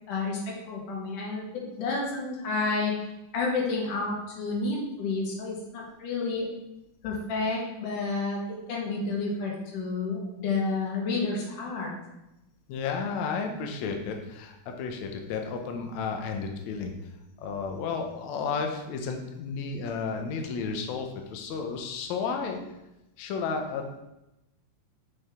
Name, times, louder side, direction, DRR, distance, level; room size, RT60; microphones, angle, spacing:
voice 1, 0.1-1.4 1.8-6.5 7.0-11.9, left 3 dB, 65° left, -3 dB, 2.9 m, -30 dB
voice 2, 12.7-16.9 17.4-22.6 23.2-24.0, left 5 dB, 85° left, 3 dB, 1.6 m, -32 dB
6.6 x 6.2 x 3.6 m, 0.92 s
omnidirectional pair, 4.2 m